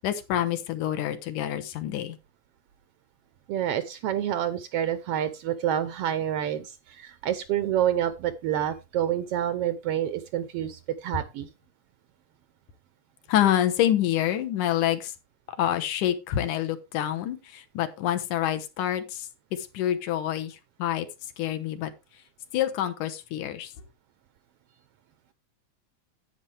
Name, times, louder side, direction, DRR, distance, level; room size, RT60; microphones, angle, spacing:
voice 1, 0.0-2.2 13.3-15.1 15.5-21.1 21.4-21.9 22.5-23.7, left 11 dB, 85° left, 8 dB, 2.6 m, -27 dB
voice 2, 3.5-11.5, right 10 dB, 90° right, 12 dB, 1.3 m, -28 dB
10.5 x 8.5 x 3.4 m, 0.25 s
omnidirectional pair, 3.5 m